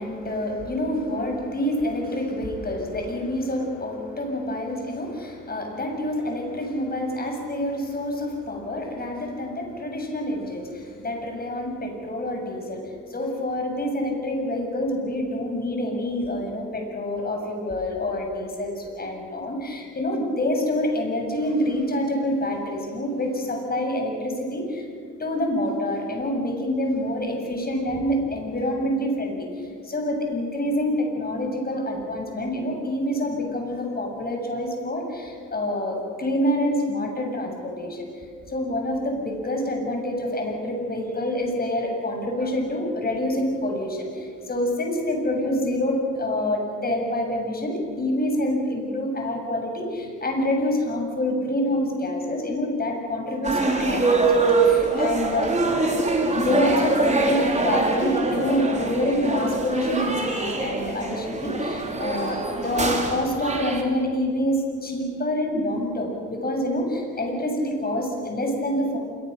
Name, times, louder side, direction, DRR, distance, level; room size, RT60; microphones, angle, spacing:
voice 1, 0.0-12.8 13.1-24.9 25.2-29.5 29.8-55.5 56.3-69.0, left 1 dB, 30° left, 2 dB, 7.2 m, -27 dB
sound 1, 53.4-63.8, right 3 dB, 25° right, 4.1 m, -24 dB
27.5 x 22.5 x 6.8 m, 2.2 s
cardioid pair, 90°, 30 cm